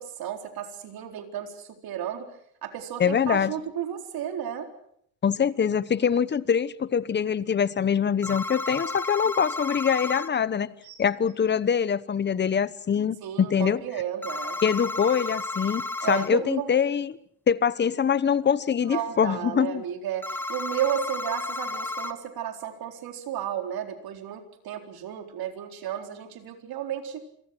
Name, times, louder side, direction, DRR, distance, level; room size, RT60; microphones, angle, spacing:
voice 1, 0.0-2.3 2.6-4.7 13.2-14.6 16.0-16.7 18.9-27.2, right 10 dB, 50° right, 4.2 m, -33 dB
voice 2, 3.0-3.5 5.2-10.7 11.0-13.8 14.6-17.2 17.5-19.8, left 7 dB, 25° left, 1.0 m, -24 dB
sound 1, 8.2-10.3 14.2-16.3 20.2-22.1, left 2 dB, 5° left, 1.3 m, -32 dB
sound 2, 9.6-10.1 10.8-12.4 13.1-13.2, right 9 dB, 75° right, 4.1 m, -55 dB
28.5 x 23.5 x 6.2 m
cardioid pair, 115°, 45 cm